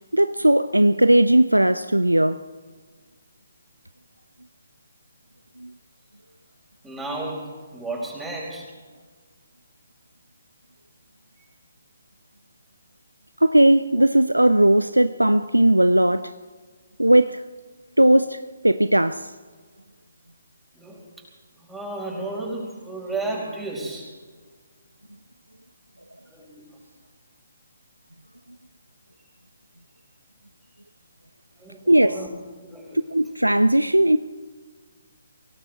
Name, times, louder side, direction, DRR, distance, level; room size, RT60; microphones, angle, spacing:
voice 1, 0.1-2.4 5.6-5.7 13.4-16.3 17.0-17.4 18.0-18.4 18.6-19.3 31.9-32.2 33.1-34.2, right 1 dB, 85° right, 0.5 m, -17 dB
voice 2, 6.8-8.7 20.7-21.1 21.6-24.1 26.3-26.6 31.6-32.3 32.6-33.0, right 2 dB, 5° right, 4.7 m, -33 dB
25.0 x 17.0 x 3.3 m
figure-of-eight pair, 140°, 0 cm